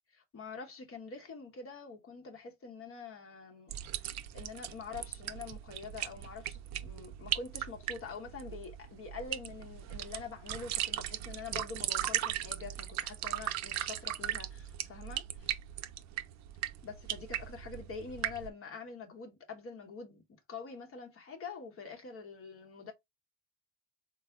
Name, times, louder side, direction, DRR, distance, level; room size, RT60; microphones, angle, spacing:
voice 1, 0.1-15.6 16.8-20.2 20.5-22.9, left 5 dB, 40° left, 0.8 m, -45 dB
sound 1, 3.7-18.5, right 13 dB, 55° right, 0.4 m, -38 dB
3.4 x 2.0 x 3.2 m
supercardioid pair, 90°, 34 cm